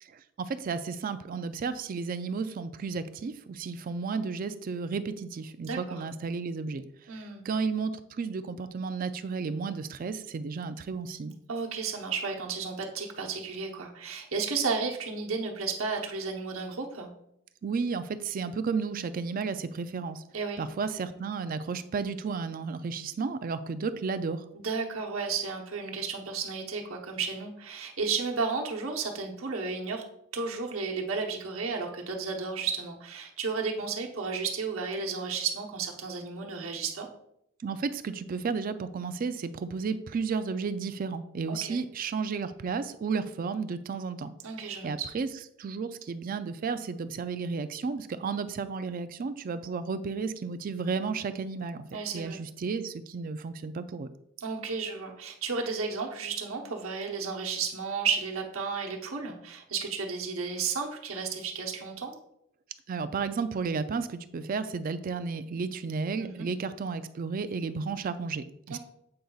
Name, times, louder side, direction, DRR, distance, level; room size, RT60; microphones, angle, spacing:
voice 1, 0.0-6.8 7.2-11.3 17.6-20.2 20.6-24.4 37.6-44.3 44.8-45.3 45.6-51.8 52.1-54.1 62.9-68.8, right 5 dB, 45° right, 12 dB, 0.3 m, -33 dB
voice 2, 5.6-6.0 7.1-7.4 11.5-17.1 20.3-20.6 21.1-21.2 24.5-30.0 30.3-37.1 41.5-41.8 44.4-45.1 51.9-52.4 54.4-62.1 66.2-66.5 68.7-68.8, right 5 dB, 85° right, 1 dB, 1.0 m, -33 dB
7.6 x 5.3 x 2.3 m, 0.77 s
head